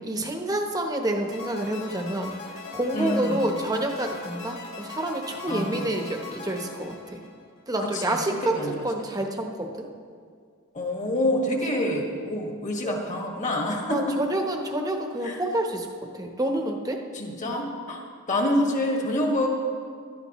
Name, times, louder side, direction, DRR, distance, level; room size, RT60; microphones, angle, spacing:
voice 1, 0.0-7.2 7.7-9.9 11.7-12.0 12.8-13.0 13.8-15.9 16.1-17.0, right 1 dB, 15° right, 3 dB, 1.0 m, -28 dB
sound 1, 1.3-7.6, left 3 dB, 75° left, 3.1 m, -40 dB
voice 2, 2.9-3.5 5.5-5.9 7.8-8.9 10.7-14.2 15.2-15.4 17.1-18.0 18.3-19.5, left 1 dB, 35° left, 0 dB, 1.7 m, -27 dB
17.0 x 12.5 x 3.1 m, 2.1 s
head